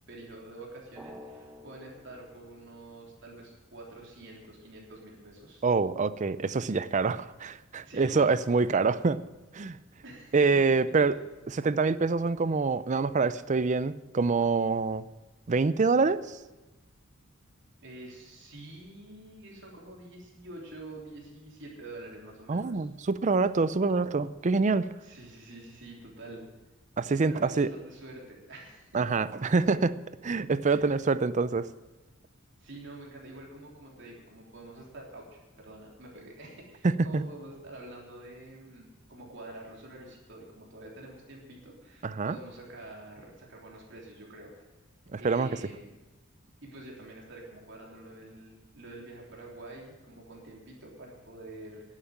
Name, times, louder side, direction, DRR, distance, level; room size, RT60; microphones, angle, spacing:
voice 1, 0.1-5.7 7.8-9.0 10.0-10.6 11.0-11.2 17.8-22.8 25.0-26.4 27.3-28.9 30.7-30.9 32.6-44.7 45.2-45.9 46.6-51.8, right 2 dB, 60° right, -2 dB, 3.4 m, -47 dB
Drum, 0.9-3.5, left 1 dB, 5° right, 0.9 m, -51 dB
voice 2, 5.6-9.1 9.5-9.8 10.3-11.2 11.5-15.0 15.5-16.2 22.5-24.9 27.0-27.7 28.9-29.9 30.2-31.7 36.8-37.2 42.0-42.4 45.1-45.5, right 4 dB, 35° right, 15 dB, 0.5 m, -26 dB
11.5 x 8.9 x 8.9 m, 1.1 s
head